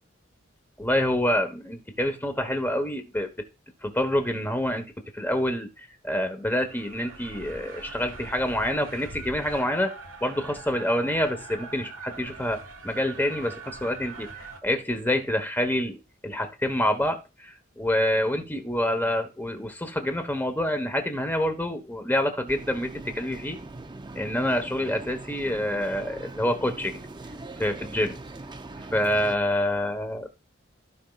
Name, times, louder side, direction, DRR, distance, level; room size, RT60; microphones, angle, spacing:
voice 1, 0.8-3.3 3.8-4.9 5.1-10.0 10.2-14.3 14.6-16.0 16.2-23.6 24.1-27.0 27.6-28.2 28.9-30.3, left 1 dB, 10° left, 1.2 m, -27 dB
sound 1, 6.5-14.6, right 4 dB, 85° right, 1.4 m, -42 dB
sound 2, 22.5-29.4, right 2 dB, 25° right, 0.5 m, -41 dB
15.5 x 5.2 x 2.4 m
head